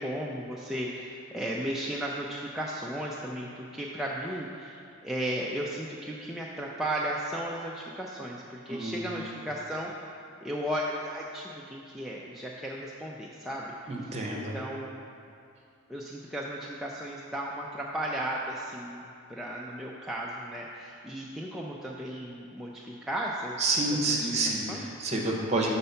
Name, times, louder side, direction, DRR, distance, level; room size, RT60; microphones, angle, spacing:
voice 1, 0.0-9.9 10.4-13.7 14.1-15.0 15.9-23.6 24.1-24.3 24.7-24.9, right 1 dB, ahead, -4 dB, 0.4 m, -35 dB
voice 2, 8.7-9.2 13.9-14.6 23.6-25.7, right 2 dB, 30° right, -2 dB, 1.0 m, -29 dB
6.7 x 4.2 x 5.6 m, 2.4 s
head